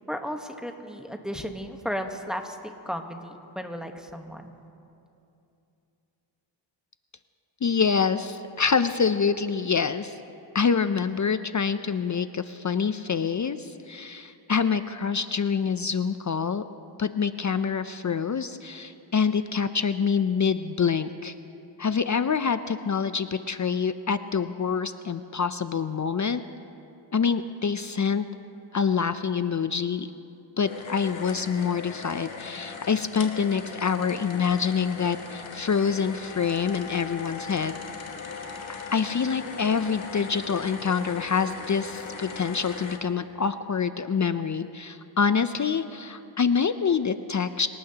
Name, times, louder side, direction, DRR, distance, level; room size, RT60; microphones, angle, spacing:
voice 1, 0.1-4.6, equal, ahead, 4 dB, 1.1 m, -34 dB
voice 2, 7.6-10.2 10.5-16.6 17.0-21.3 21.8-26.4 27.1-28.3 28.7-30.1 30.6-37.7 38.9-47.7, left 6 dB, 40° left, 11 dB, 0.5 m, -26 dB
sound 1, 30.6-43.0, left 5 dB, 80° left, 1.3 m, -39 dB
26.0 x 18.5 x 2.9 m, 2.8 s
wide cardioid pair, 80°, 46 cm